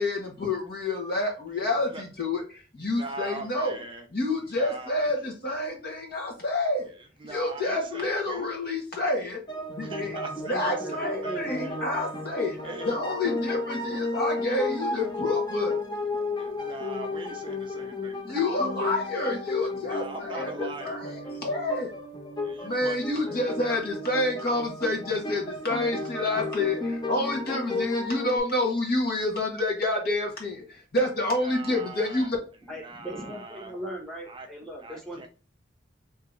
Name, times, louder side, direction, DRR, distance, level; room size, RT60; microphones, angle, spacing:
voice 1, 0.0-3.8 4.1-6.9 7.3-9.4 9.7-10.2 10.5-12.6 12.8-15.7 18.3-21.9 22.6-32.4, left 2 dB, 55° left, 1.3 m, -28 dB
voice 2, 2.8-4.1 4.5-5.1 7.2-8.5 9.7-12.0 12.6-13.0 16.4-18.7 19.8-21.4 22.4-23.5 31.4-32.3 32.8-33.7 34.3-34.5 34.8-35.3, right 3 dB, 25° right, 0.4 m, -42 dB
sound 1, 9.5-28.4, left 2 dB, 25° left, 0.7 m, -33 dB
voice 3, 10.5-11.9 12.7-13.9 32.7-35.3, equal, 5° left, 1.2 m, -39 dB
2.9 x 2.8 x 3.7 m
head